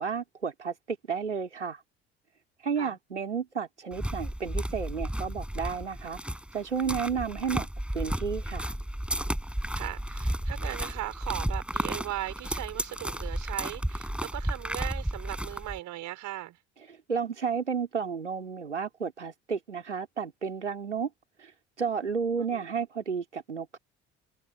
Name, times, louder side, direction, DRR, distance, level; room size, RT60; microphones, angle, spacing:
voice 1, 0.0-1.8 2.6-6.2 6.5-7.7 7.9-8.7 16.9-21.1 21.4-21.5 21.8-23.8, right 6 dB, 85° right, 3.5 m, -32 dB
sound 1, 3.9-15.8, equal, 5° right, 6.1 m, -33 dB
voice 2, 9.7-16.6 22.4-22.7, right 15 dB, 55° right, 5.6 m, -38 dB
figure-of-eight pair, 50°, 35 cm